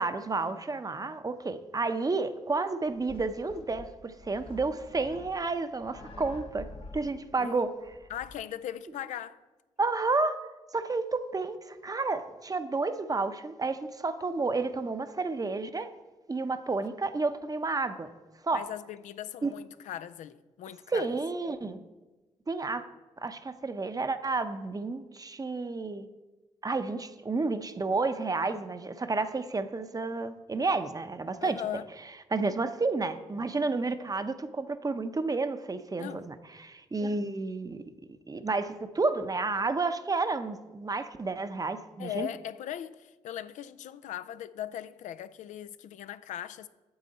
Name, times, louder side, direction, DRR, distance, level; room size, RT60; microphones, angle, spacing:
voice 1, 0.0-6.7 6.9-7.7 9.8-10.4 10.7-15.9 16.3-18.1 18.4-18.6 19.4-19.5 20.9-21.8 22.5-22.8 23.2-26.1 26.6-31.6 32.3-37.8 38.3-42.3, right 3 dB, 30° right, 0.7 m, -31 dB
sound 1, 2.9-8.3, left 3 dB, 45° left, 0.9 m, -48 dB
voice 2, 8.1-9.4 18.5-21.1 31.4-31.9 36.0-36.3 42.0-46.7, left 11 dB, 80° left, 0.4 m, -39 dB
8.7 x 7.4 x 4.1 m
supercardioid pair, 60°, 13 cm